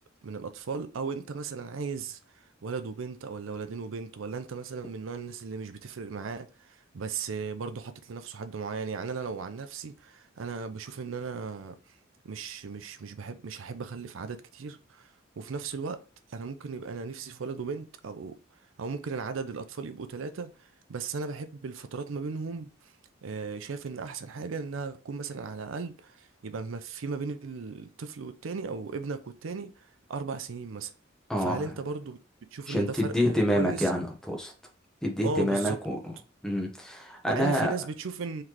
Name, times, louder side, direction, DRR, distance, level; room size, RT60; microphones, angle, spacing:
voice 1, 0.2-12.0 12.2-15.1 15.4-16.0 16.3-18.4 18.8-22.9 23.2-30.9 31.4-32.2 32.5-33.9 35.2-35.8 37.3-38.4, right 4 dB, 80° right, 0.5 m, -36 dB
voice 2, 31.3-31.7 32.7-34.5 35.0-36.0 36.4-37.7, equal, 5° left, 0.9 m, -27 dB
3.9 x 3.2 x 2.9 m
head